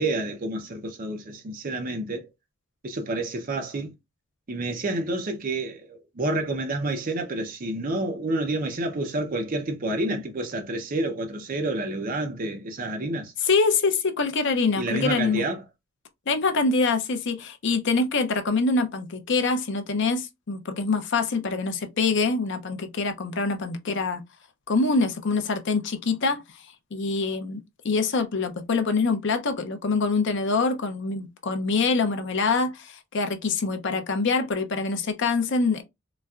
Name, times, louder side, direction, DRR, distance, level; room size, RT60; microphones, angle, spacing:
voice 1, 0.0-2.3 2.8-3.9 4.5-13.3 14.8-15.6, right 2 dB, 40° right, 0.6 m, -29 dB
voice 2, 13.4-15.5 16.3-24.2 24.7-26.4 26.9-35.8, left 4 dB, 60° left, 0.6 m, -25 dB
4.0 x 2.2 x 2.3 m
head